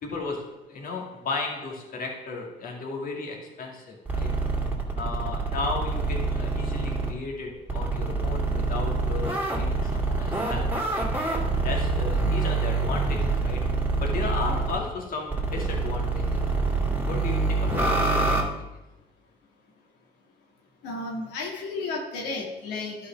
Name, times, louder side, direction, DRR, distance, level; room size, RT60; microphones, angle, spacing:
voice 1, 0.0-4.3 4.9-11.1 11.6-13.7 14.0-16.4 17.1-18.4, left 3 dB, 55° left, 1 dB, 2.2 m, -34 dB
sound 1, 4.1-7.1 7.7-14.8 15.3-18.4, right 3 dB, 10° right, 2.4 m, -26 dB
voice 2, 20.8-23.1, left 3 dB, 90° left, -1 dB, 1.8 m, -33 dB
11.5 x 4.8 x 5.9 m, 1.0 s
cardioid pair, 110°, 17 cm